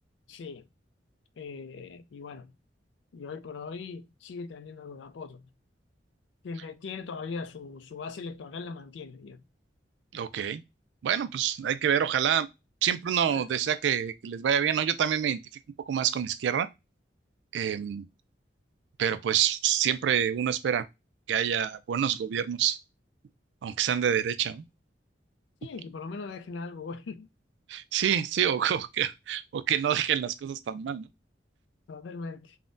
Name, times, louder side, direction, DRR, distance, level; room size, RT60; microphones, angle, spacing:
voice 1, 0.3-0.6 1.4-2.5 3.1-5.4 6.4-9.4 13.3-13.5 25.6-27.3 31.9-32.6, left 4 dB, 80° left, 0.4 m, -40 dB
voice 2, 10.1-10.6 11.0-12.5 12.8-15.4 15.9-16.7 17.5-18.0 19.0-20.8 21.3-22.8 23.6-24.6 27.7-31.1, right 9 dB, 75° right, 0.3 m, -27 dB
3.5 x 2.1 x 2.5 m
head